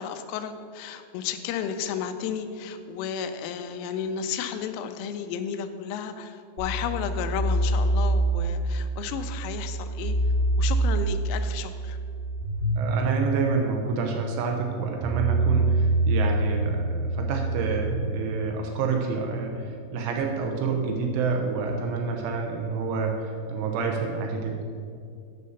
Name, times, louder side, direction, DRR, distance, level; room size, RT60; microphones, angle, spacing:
voice 1, 0.0-10.2 10.6-12.0, left 7 dB, 85° left, 8 dB, 3.0 m, -33 dB
sound 1, 6.6-18.0, right 2 dB, 65° right, 2.4 m, -26 dB
voice 2, 12.8-24.6, right 5 dB, 80° right, 2 dB, 3.1 m, -28 dB
9.4 x 5.4 x 6.5 m, 2.3 s
omnidirectional pair, 6.0 m